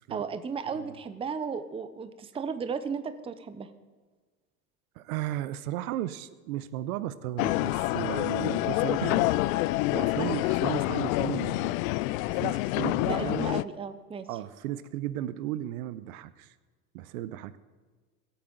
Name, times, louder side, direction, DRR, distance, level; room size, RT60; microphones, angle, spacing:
voice 1, 0.1-3.7 13.1-14.3, right 6 dB, 15° right, 11 dB, 0.6 m, -35 dB
voice 2, 0.7-1.0 5.0-9.3 9.6-11.9 12.2-13.5 14.3-16.5 16.9-17.6, right 13 dB, 70° right, 15 dB, 0.8 m, -35 dB
sound 1, 7.4-13.6, left 18 dB, 65° left, 0.5 m, -27 dB
22.0 x 8.4 x 3.9 m, 1.4 s
supercardioid pair, 110°, 44 cm